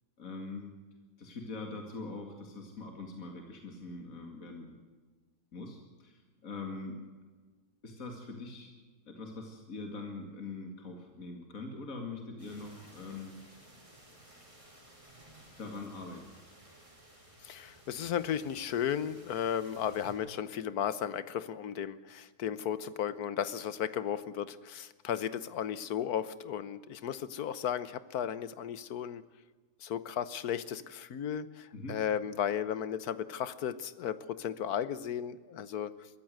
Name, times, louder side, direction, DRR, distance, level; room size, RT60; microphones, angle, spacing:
voice 1, 0.2-0.7 1.2-4.7 5.5-7.0 7.8-8.7 9.1-13.6 15.6-16.4 31.7-32.0, left 3 dB, 60° left, 3 dB, 2.6 m, -43 dB
sound 1, 12.4-20.1, right 1 dB, 20° right, 5.6 m, -56 dB
voice 2, 17.4-29.2 29.8-35.9, left 9 dB, 75° left, 15 dB, 1.5 m, -35 dB
22.5 x 14.5 x 7.8 m, 1.4 s
omnidirectional pair, 1.6 m